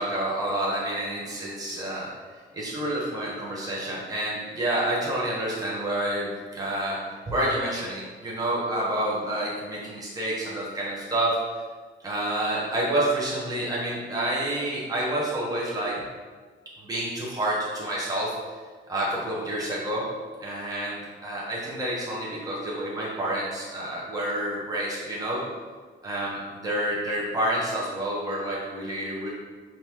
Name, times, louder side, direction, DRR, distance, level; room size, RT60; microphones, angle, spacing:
voice 1, 0.0-2.1 2.5-7.0 7.3-11.6 12.0-16.0 16.8-18.3 18.9-20.1 20.4-25.4 26.0-29.3, right 1 dB, 20° right, -6 dB, 1.2 m, -28 dB
5.5 x 3.0 x 3.1 m, 1.5 s
cardioid pair, 90°, 20 cm